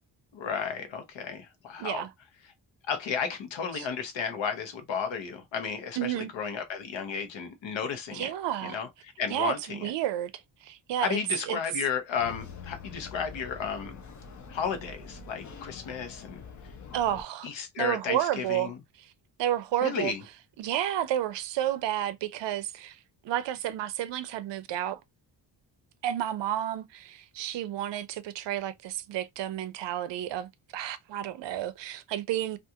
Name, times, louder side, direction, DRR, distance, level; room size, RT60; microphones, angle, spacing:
voice 1, 0.3-2.0 2.9-8.3 8.6-8.9 9.2-9.9 11.0-14.0 14.5-16.4 17.4-18.7 19.8-20.2, left 6 dB, 75° left, 0.9 m, -33 dB
voice 2, 1.8-2.1 3.7-3.9 6.0-6.3 8.1-8.8 9.3-11.2 11.5-11.6 16.9-17.5 17.8-18.7 19.0-19.1 19.4-20.1 20.6-23.0 23.2-25.0 26.0-32.6, right 12 dB, 70° right, 0.5 m, -31 dB
sound 1, 12.2-17.2, left 5 dB, 40° left, 0.5 m, -45 dB
2.5 x 2.4 x 2.7 m
wide cardioid pair, 170°, 45 cm